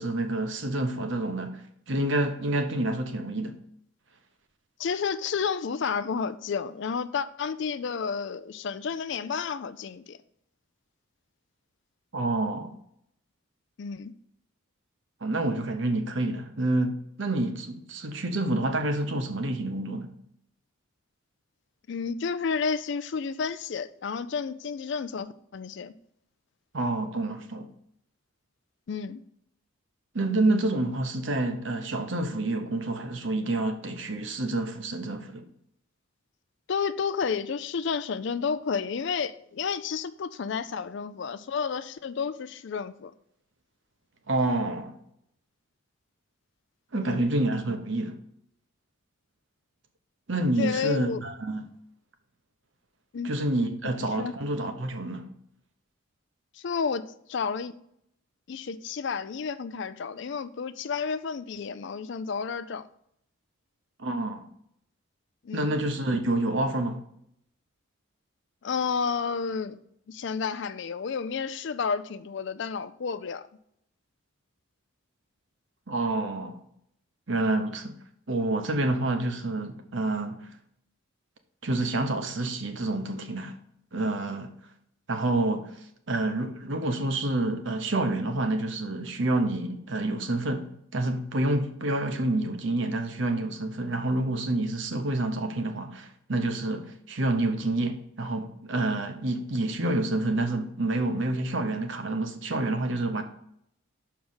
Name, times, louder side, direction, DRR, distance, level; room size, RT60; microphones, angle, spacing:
voice 1, 0.0-3.6 12.1-12.7 15.2-20.1 26.7-27.7 30.1-35.4 44.3-45.0 46.9-48.2 50.3-51.6 53.2-55.3 64.0-64.4 65.5-67.0 75.9-76.6 77.3-78.0 78.3-80.5 81.6-83.5 83.9-84.5 85.1-85.7 86.1-103.2, right 2 dB, 60° right, 0.9 m, -28 dB
voice 2, 4.8-10.2 13.8-14.1 21.9-25.9 28.9-29.2 36.7-43.1 46.9-47.2 50.6-51.2 53.1-53.3 54.0-54.3 56.5-57.8 58.5-62.9 65.4-65.8 68.6-69.8 70.1-73.4, left 5 dB, 55° left, 0.4 m, -31 dB
6.3 x 4.7 x 5.5 m
head